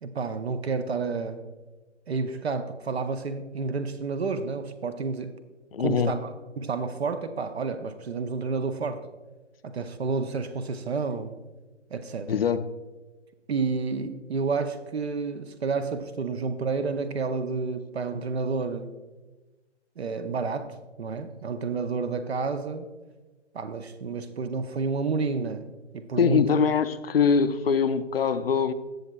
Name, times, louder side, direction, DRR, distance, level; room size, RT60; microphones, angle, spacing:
voice 1, 0.0-1.4 2.1-5.3 5.8-9.0 9.6-11.4 11.9-12.4 13.5-18.9 20.0-20.7 21.0-22.9 23.5-25.7 25.9-26.5, right 4 dB, 60° right, 0.8 m, -30 dB
voice 2, 5.7-6.2 12.3-12.6 26.2-28.7, left 6 dB, 55° left, 0.5 m, -23 dB
15.5 x 6.6 x 2.3 m
figure-of-eight pair, 150°, 36 cm